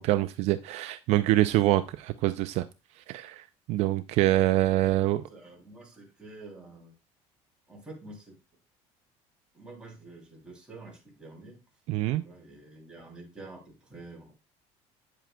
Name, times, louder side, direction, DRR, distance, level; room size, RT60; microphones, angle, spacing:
voice 1, 0.0-2.7 3.1-5.2 11.9-12.2, right 15 dB, 60° right, 12 dB, 0.4 m, -25 dB
voice 2, 4.8-6.9 7.7-8.3 9.5-11.6 12.2-14.3, right 2 dB, 5° right, -2 dB, 2.9 m, -48 dB
8.9 x 7.5 x 2.2 m, 0.28 s
cardioid pair, 155°, 12 cm